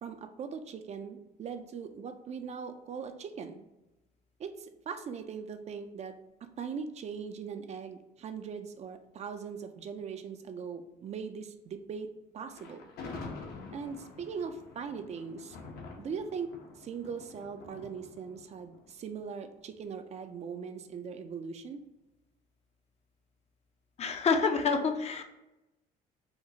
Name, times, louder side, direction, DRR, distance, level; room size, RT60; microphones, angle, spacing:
voice 1, 0.0-3.6 4.4-6.2 6.6-12.1 12.3-12.9 13.7-15.6 16.0-21.8, right 6 dB, 40° right, 7 dB, 0.4 m, -40 dB
Thunder, 12.5-19.7, left 3 dB, 70° left, 0.8 m, -47 dB
voice 2, 24.0-25.2, left 5 dB, 40° left, 6 dB, 0.5 m, -27 dB
4.4 x 2.4 x 2.7 m, 0.97 s
cardioid pair, 110°, 17 cm